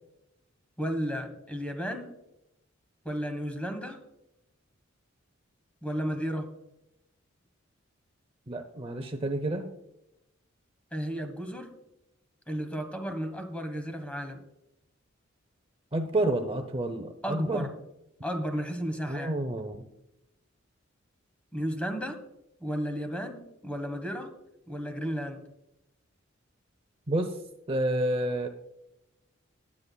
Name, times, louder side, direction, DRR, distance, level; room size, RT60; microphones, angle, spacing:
voice 1, 0.8-2.2 3.0-4.0 5.8-6.5 10.9-11.8 12.5-14.4 17.2-17.7 18.2-19.3 21.5-22.2 22.6-24.3 24.7-25.4, equal, 5° left, 6 dB, 1.3 m, -33 dB
voice 2, 8.5-9.7 15.9-17.7 19.1-19.8 27.1-27.3 27.7-28.5, right 1 dB, 30° right, 7 dB, 0.7 m, -29 dB
19.5 x 8.4 x 2.3 m, 0.89 s
head